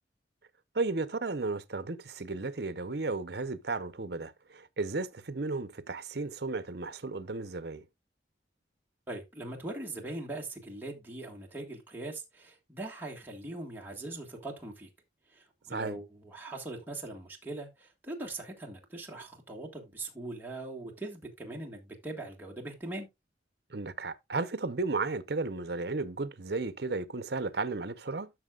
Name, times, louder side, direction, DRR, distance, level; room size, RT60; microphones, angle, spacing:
voice 1, 0.7-7.8 15.7-16.0 23.7-28.3, right 3 dB, 60° right, 0.8 m, -34 dB
voice 2, 9.1-14.9 15.3-23.1, right 2 dB, 10° right, 1.7 m, -41 dB
12.5 x 6.3 x 2.4 m
head